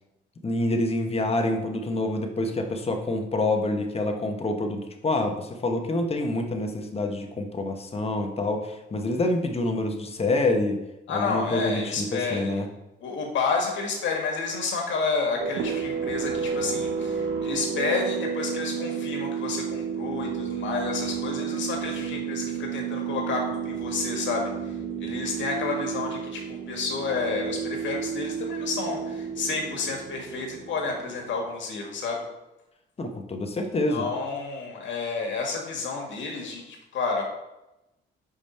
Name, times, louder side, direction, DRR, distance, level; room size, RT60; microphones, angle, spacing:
voice 1, 0.4-10.8 11.1-12.7 33.0-34.1, left 2 dB, 30° left, 4 dB, 1.0 m, -27 dB
voice 2, 11.1-12.6 13.0-24.7 25.0-32.2 33.9-37.2, left 4 dB, 70° left, 0 dB, 1.8 m, -30 dB
sound 1, 15.4-31.7, right 7 dB, 80° right, 0.9 m, -31 dB
5.3 x 5.1 x 4.3 m, 0.94 s
cardioid pair, 90°, 20 cm